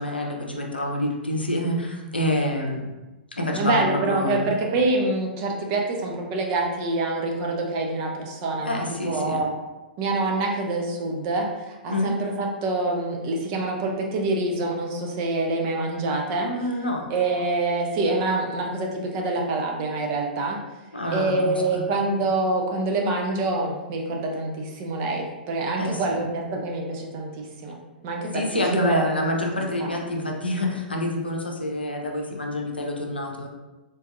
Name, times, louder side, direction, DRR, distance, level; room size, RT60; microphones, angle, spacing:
voice 1, 0.0-2.9 3.3-4.5 8.6-9.4 11.9-12.1 16.4-17.1 20.9-21.8 25.8-26.2 28.3-33.5, left 1 dB, 80° left, 0 dB, 0.6 m, -27 dB
voice 2, 3.6-9.5 10.0-16.5 17.1-20.6 21.1-27.8 28.0-29.1, right 2 dB, 35° right, 0 dB, 0.6 m, -26 dB
3.8 x 2.5 x 2.6 m, 1.1 s
figure-of-eight pair, 110°, 5 cm